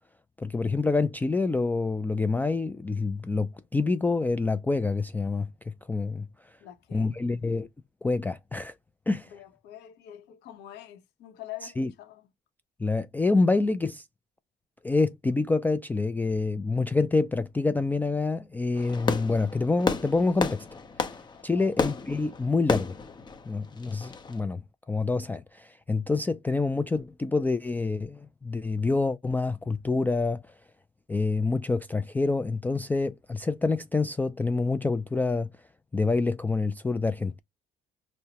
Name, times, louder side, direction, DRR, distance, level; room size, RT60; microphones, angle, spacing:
voice 1, 0.4-6.3 6.9-7.7 8.0-8.7 9.1-9.3 11.8-11.9 12.8-14.0 14.8-20.7 21.4-23.0 23.5-24.6 24.9-30.4 31.1-35.5 35.9-37.4, left 3 dB, 10° left, 0.3 m, -27 dB
voice 2, 6.6-7.1 9.3-12.3 21.4-21.8, left 13 dB, 85° left, 0.9 m, -45 dB
Fireworks, 18.8-24.4, left 4 dB, 25° left, 0.7 m, -32 dB
5.3 x 2.1 x 2.8 m
cardioid pair, 110°, 17 cm